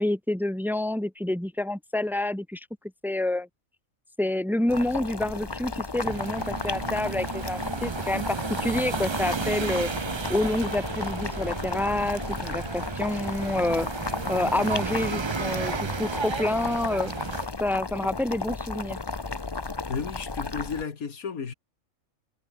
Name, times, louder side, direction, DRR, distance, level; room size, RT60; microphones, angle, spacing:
voice 1, 0.0-2.7 3.0-3.5 4.2-9.9 10.3-13.9 14.3-17.1 17.6-19.0, left 1 dB, ahead, 1.5 m, -28 dB
Boiling, 4.7-20.8, left 3 dB, 20° left, 0.8 m, -34 dB
sound 1, 6.0-17.5, right 5 dB, 50° right, 0.3 m, -33 dB
sound 2, 10.3-14.5, left 2 dB, 40° left, 5.5 m, -49 dB
voice 2, 19.9-21.5, left 6 dB, 90° left, 2.2 m, -33 dB
omnidirectional pair, 1.5 m